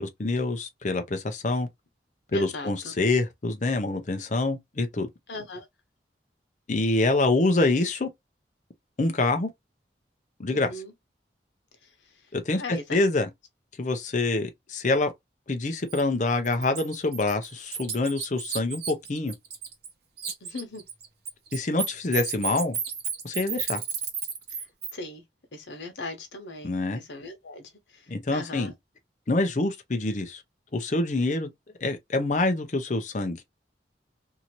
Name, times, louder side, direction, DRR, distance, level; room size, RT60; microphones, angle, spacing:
voice 1, 0.0-1.7 2.3-5.1 6.7-8.1 9.0-9.5 10.4-10.7 12.3-13.3 13.8-15.1 15.5-19.3 21.5-22.8 23.2-23.8 26.6-27.0 28.1-28.7 29.3-30.4 30.7-31.5 31.8-33.4, left 2 dB, 45° left, 0.6 m, -26 dB
voice 2, 2.3-2.9 5.3-5.6 10.5-10.9 12.6-12.8 20.4-20.8 24.9-25.2 25.5-28.1 28.3-28.7, left 2 dB, 85° left, 1.0 m, -38 dB
Bird, 15.9-16.0 16.4-19.9 20.2-24.9, right 7 dB, 60° right, 0.9 m, -33 dB
2.8 x 2.6 x 2.9 m
head